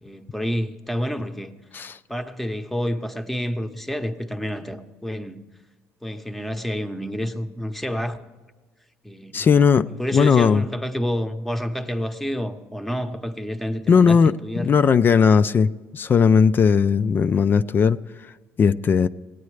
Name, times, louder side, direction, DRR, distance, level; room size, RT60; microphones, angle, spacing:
voice 1, 0.0-1.5 2.1-5.4 6.0-8.2 9.0-9.6 10.0-14.7, equal, 5° left, 0.8 m, -29 dB
voice 2, 9.3-10.6 13.9-18.0 18.6-19.1, left 6 dB, 35° left, 0.4 m, -18 dB
18.0 x 9.4 x 3.2 m
cardioid pair, 105°, 6 cm